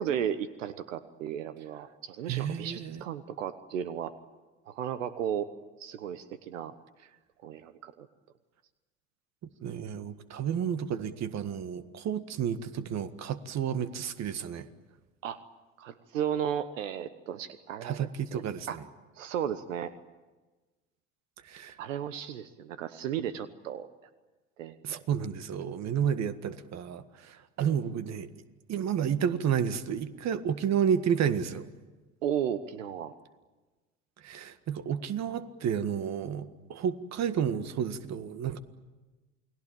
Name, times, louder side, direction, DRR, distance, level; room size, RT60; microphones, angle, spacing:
voice 1, 0.0-4.1 4.7-5.5 5.8-6.7 7.4-8.1 15.2-15.4 15.8-18.4 18.7-18.8 19.2-19.9 21.8-23.9 24.6-25.0 32.2-33.1, right 9 dB, 80° right, 13 dB, 1.2 m, -34 dB
voice 2, 2.3-3.0 9.6-14.7 17.8-18.8 21.5-21.8 24.8-28.3 28.7-31.7 34.2-38.6, right 8 dB, 45° right, 12 dB, 1.8 m, -31 dB
29.0 x 20.5 x 9.0 m, 1.2 s
hypercardioid pair, 75°, 38 cm